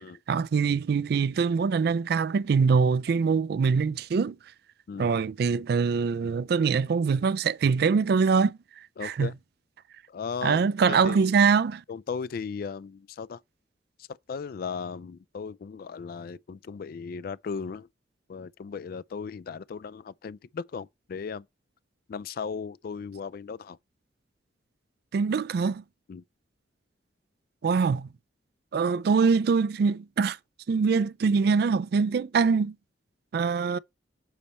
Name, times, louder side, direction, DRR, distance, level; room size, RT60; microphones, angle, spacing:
voice 1, 0.3-4.4 5.0-8.6 9.0-9.3 10.4-11.8 25.1-25.8 27.6-28.1 28.7-30.4 30.7-32.7 33.3-33.8, right 5 dB, 55° right, 0.3 m, -23 dB
voice 2, 4.9-5.3 9.0-9.3 10.1-11.4 11.9-13.4 14.0-17.9 18.3-21.5 22.1-23.8 26.1-26.2, left 5 dB, 50° left, 0.3 m, -37 dB
7.1 x 4.2 x 4.1 m
head